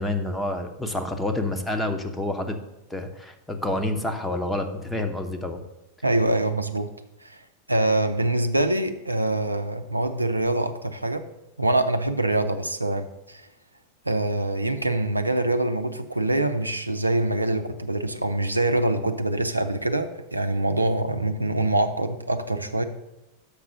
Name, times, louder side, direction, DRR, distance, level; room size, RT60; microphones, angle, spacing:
voice 1, 0.0-2.6 2.9-5.6, left 1 dB, 5° left, 6 dB, 0.9 m, -28 dB
voice 2, 6.0-6.9 7.2-7.4 7.7-11.2 11.6-13.5 14.1-22.8, right 2 dB, 85° right, 7 dB, 0.6 m, -24 dB
6.8 x 5.9 x 6.6 m, 0.94 s
figure-of-eight pair, 90°, 0 cm